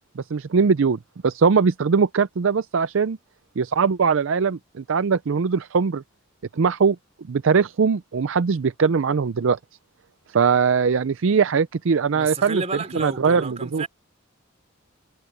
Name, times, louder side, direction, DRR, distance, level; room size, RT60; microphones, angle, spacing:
voice 1, 0.2-3.2 3.6-6.0 6.5-7.0 7.3-9.6 10.3-12.6 13.0-13.8, right 5 dB, 65° right, 0.5 m, -21 dB
voice 2, 12.1-13.9, right 3 dB, 30° right, 4.0 m, -31 dB
head